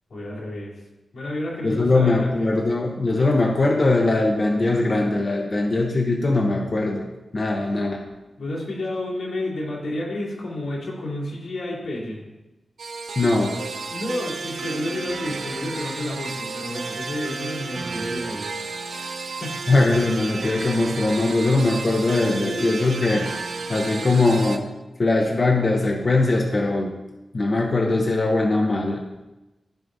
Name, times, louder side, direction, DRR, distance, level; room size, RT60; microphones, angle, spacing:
voice 1, 0.1-0.7 1.1-2.1 2.4-2.6 7.6-7.7 8.4-12.2 13.9-18.5 19.3-19.6, left 1 dB, 90° left, -7 dB, 2.8 m, -30 dB
voice 2, 1.6-7.1 7.3-8.0 13.2-13.6 19.7-23.3 23.7-24.7 25.0-27.0 27.3-29.0, left 2 dB, 40° left, 0 dB, 0.8 m, -21 dB
sound 1, 12.8-24.6, right 4 dB, 65° right, 0.6 m, -32 dB
14.0 x 4.8 x 2.6 m, 1.0 s
wide cardioid pair, 130°, 0 cm